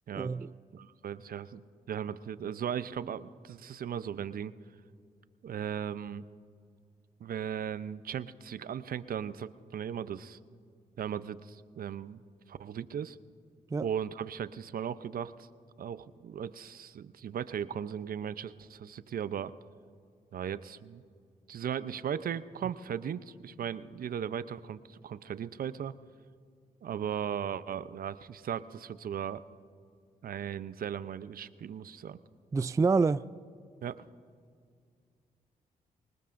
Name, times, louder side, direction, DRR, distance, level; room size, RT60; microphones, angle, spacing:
voice 1, 0.1-0.5 13.7-13.9 32.5-33.3, right 4 dB, 20° right, 0.3 m, -27 dB
voice 2, 0.7-1.6 1.9-4.5 5.4-6.2 7.2-10.4 11.0-12.2 12.5-13.2 13.8-15.3 15.8-19.5 20.3-21.0 21.5-25.9 26.8-29.4 30.2-32.2 33.8-33.9, right 8 dB, 60° right, 0.6 m, -37 dB
23.5 x 20.5 x 2.6 m
supercardioid pair, 50°, 17 cm